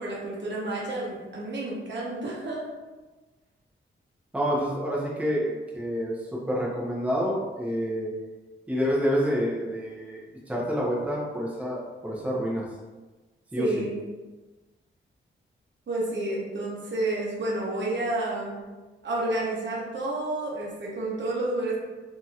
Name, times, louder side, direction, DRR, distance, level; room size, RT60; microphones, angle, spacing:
voice 1, 0.0-2.6 13.6-14.0 15.9-18.6 19.0-21.8, right 2 dB, 60° right, -5 dB, 0.9 m, -30 dB
voice 2, 4.3-8.1 8.7-12.6 13.5-13.9, equal, 5° right, -5 dB, 0.8 m, -28 dB
2.9 x 2.7 x 2.4 m, 1.2 s
cardioid pair, 60°, 21 cm